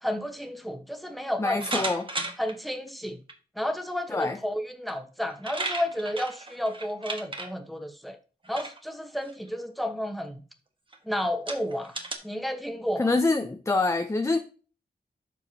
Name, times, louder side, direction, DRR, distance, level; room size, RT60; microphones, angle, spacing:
voice 1, 0.0-1.9 2.4-3.2 3.5-8.2 8.5-10.4 11.0-12.0 12.2-13.1, equal, ahead, 1.2 m, -31 dB
voice 2, 1.4-2.1 4.1-4.4 13.0-14.4, left 3 dB, 15° left, 0.6 m, -25 dB
sound 1, 1.6-2.5 3.3-3.4 4.9-5.0 5.2-7.5 8.4-8.8 9.2-9.5 10.2-10.3 10.9-11.0 11.5-12.1, right 2 dB, 30° right, 1.4 m, -34 dB
12.5 x 4.7 x 2.8 m
wide cardioid pair, 100°, 17 cm